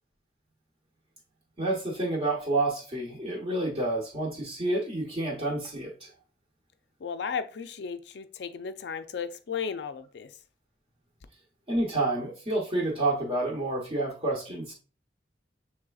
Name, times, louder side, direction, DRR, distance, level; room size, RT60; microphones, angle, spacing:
voice 1, 1.6-6.1 11.7-14.7, right 2 dB, 30° right, 0.9 m, -29 dB
voice 2, 7.0-10.3, left 6 dB, 70° left, 0.4 m, -35 dB
6.2 x 3.4 x 2.3 m
head